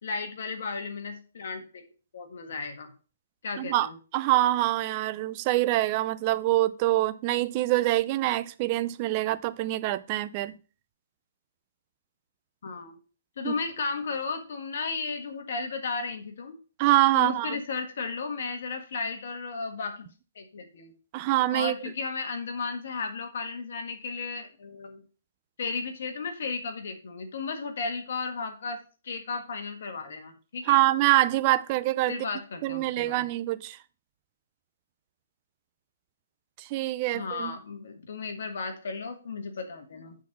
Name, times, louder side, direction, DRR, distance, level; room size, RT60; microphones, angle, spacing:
voice 1, 0.0-1.8 2.1-2.9 3.4-4.0 12.6-13.0 13.4-16.6 17.1-20.1 20.3-20.9 21.5-25.0 25.6-28.8 29.0-30.8 32.1-33.2 37.1-40.2, left 4 dB, 60° left, 1.6 m, -34 dB
voice 2, 3.6-10.5 13.4-13.5 16.8-17.6 21.1-21.7 30.7-32.2 32.6-33.8 36.6-37.5, right 16 dB, 30° right, 0.5 m, -25 dB
8.4 x 4.1 x 5.9 m
hypercardioid pair, 155°, 0 cm